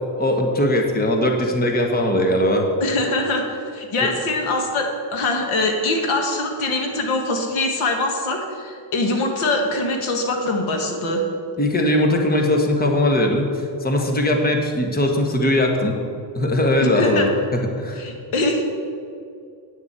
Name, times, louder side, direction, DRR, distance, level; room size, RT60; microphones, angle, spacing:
voice 1, 0.1-2.7 4.0-4.1 11.6-16.0 16.3-18.0, left 1 dB, 20° left, 2 dB, 1.3 m, -20 dB
voice 2, 2.8-11.2 16.8-17.3 17.9-18.7, left 2 dB, 90° left, 3 dB, 1.8 m, -23 dB
9.2 x 7.0 x 8.1 m, 2.4 s
cardioid pair, 145°, 48 cm